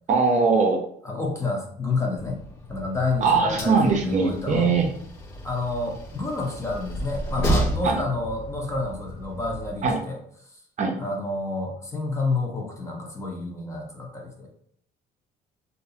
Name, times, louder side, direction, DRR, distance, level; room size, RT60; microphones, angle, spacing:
voice 1, 0.1-0.8 3.2-4.9 7.8-8.0 9.8-10.0 10.8-10.9, right 4 dB, 45° right, 2 dB, 0.5 m, -21 dB
voice 2, 1.0-2.4 2.7-4.7 5.4-10.2 11.0-14.5, left 3 dB, 15° left, 0 dB, 0.6 m, -29 dB
Train, 2.2-9.9, right 1 dB, 85° left, 0.7 m, -32 dB
2.4 x 2.2 x 2.7 m, 0.64 s
cardioid pair, 110°, 17 cm